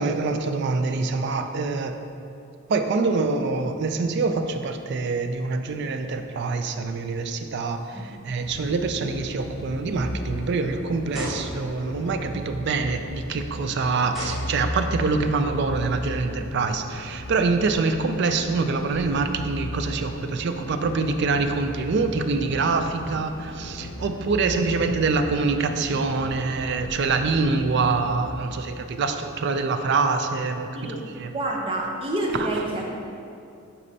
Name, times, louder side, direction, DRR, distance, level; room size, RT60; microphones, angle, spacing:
voice 1, 0.0-2.0 2.7-31.3 32.3-32.6, right 4 dB, 50° right, 7 dB, 0.3 m, -25 dB
sound 1, 7.9-8.3 8.8-8.9 9.6-9.7 11.1-11.8 13.3-13.4 14.1-15.0, equal, ahead, 1.2 m, -36 dB
sound 2, 8.4-28.3, left 1 dB, 75° left, 0.5 m, -36 dB
voice 2, 31.3-33.0, right 1 dB, 25° right, -2 dB, 0.7 m, -28 dB
8.1 x 4.2 x 2.7 m, 2.5 s
head